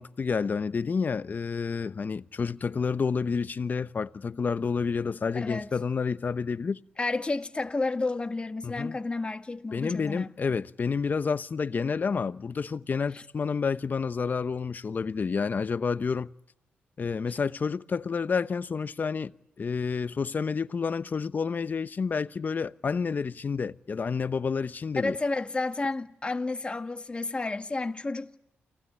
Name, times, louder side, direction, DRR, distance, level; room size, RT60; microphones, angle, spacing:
voice 1, 0.0-6.8 8.6-9.0 9.7-16.3 17.0-19.3 19.6-25.2, left 5 dB, 45° left, 1.0 m, -29 dB
voice 2, 5.3-5.7 7.0-10.5 13.1-13.2 17.3-17.4 25.0-28.4, left 3 dB, 25° left, 1.9 m, -31 dB
29.5 x 18.5 x 9.9 m
cardioid pair, 75°, 4 cm